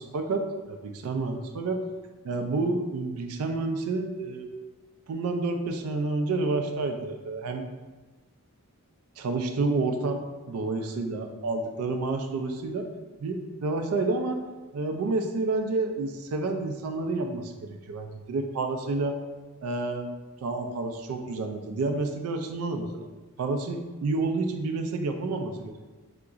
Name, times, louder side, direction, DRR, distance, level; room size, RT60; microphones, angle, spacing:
voice 1, 0.0-1.8 2.2-4.5 5.1-7.7 9.2-10.2 10.5-12.9 13.2-14.4 14.7-19.2 19.6-20.1 20.4-23.1 23.4-26.0, right 3 dB, 75° right, 5 dB, 0.3 m, -29 dB
3.6 x 2.8 x 2.4 m, 1.2 s
head